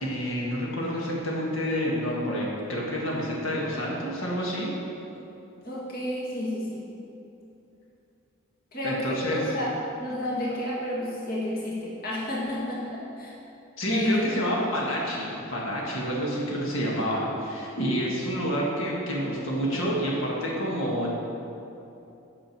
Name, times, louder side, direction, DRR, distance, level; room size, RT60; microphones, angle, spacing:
voice 1, 0.0-4.7 8.8-9.4 13.8-21.1, equal, 70° left, -4 dB, 1.8 m, -28 dB
voice 2, 5.6-6.8 8.7-9.7 10.0-13.3 13.8-14.3 17.0-17.3 17.7-18.2, left 1 dB, 45° left, -5 dB, 1.8 m, -31 dB
8.9 x 6.3 x 6.1 m, 2.8 s
head